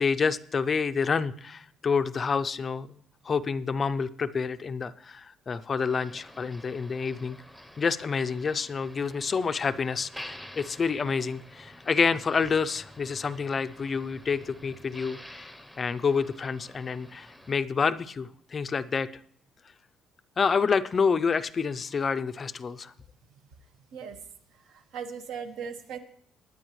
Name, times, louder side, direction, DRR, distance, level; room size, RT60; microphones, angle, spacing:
voice 1, 0.0-7.4 7.8-15.5 15.8-19.1 20.4-22.9, left 5 dB, 25° left, 13 dB, 0.4 m, -28 dB
Motor vehicle (road), 5.9-17.5, equal, ahead, 0.7 m, -48 dB
voice 2, 24.5-26.0, right 6 dB, 75° right, 6 dB, 1.4 m, -38 dB
21.5 x 9.6 x 3.1 m, 0.62 s
cardioid pair, 160°, 0 cm